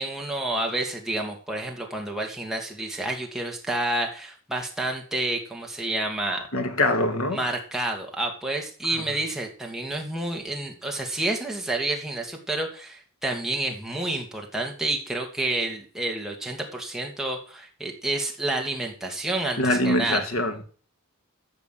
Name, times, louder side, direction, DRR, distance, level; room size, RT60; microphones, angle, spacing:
voice 1, 0.0-6.5 7.3-20.2, right 2 dB, ahead, 2.3 m, -29 dB
voice 2, 6.5-7.4 8.9-9.2 19.6-20.6, left 1 dB, 80° left, 1.9 m, -24 dB
13.5 x 6.0 x 7.8 m
head